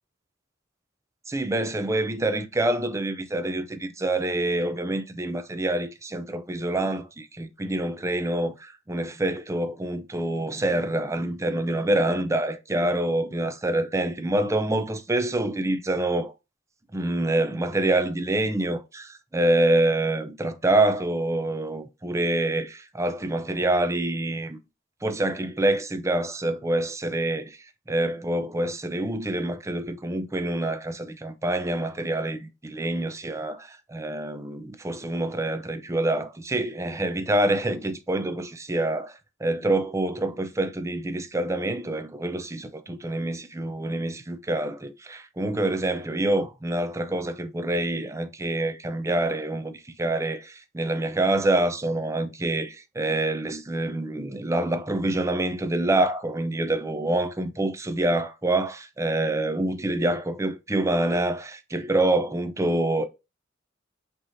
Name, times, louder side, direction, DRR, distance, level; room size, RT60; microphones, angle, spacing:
voice 1, 1.3-16.3 16.9-24.6 25.0-27.6 27.9-63.1, right 1 dB, 15° right, 0.5 m, -26 dB
5.3 x 3.1 x 2.7 m
head